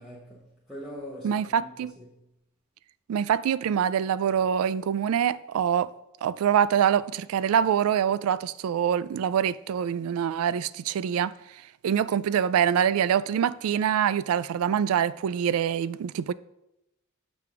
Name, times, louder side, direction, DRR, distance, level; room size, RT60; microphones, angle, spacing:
voice 1, 0.0-2.3, equal, ahead, 1.0 m, -43 dB
voice 2, 1.2-1.9 3.1-5.9 6.2-11.3 11.8-16.3, right 8 dB, 90° right, 0.3 m, -25 dB
6.7 x 3.5 x 5.8 m
head